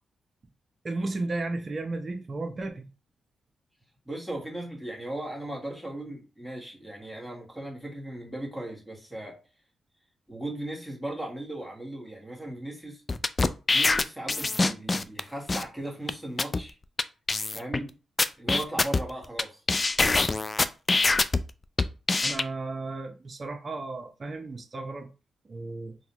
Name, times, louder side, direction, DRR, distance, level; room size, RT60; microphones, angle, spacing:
voice 1, 0.8-2.9 22.2-25.1 25.5-26.0, right 2 dB, 45° right, 0.7 m, -34 dB
voice 2, 4.0-9.4 10.3-13.0 13.7-16.7 17.5-17.9 18.4-19.6, right 1 dB, ahead, 1.4 m, -37 dB
sound 1, 13.1-15.2 15.5-15.6 16.1-16.2 16.4-16.6 17.0-17.1 17.3-17.8 18.2-19.4 19.7-21.4 21.8-22.4, left 3 dB, 35° left, 0.3 m, -24 dB
3.9 x 2.2 x 3.0 m
supercardioid pair, 55°, 0 cm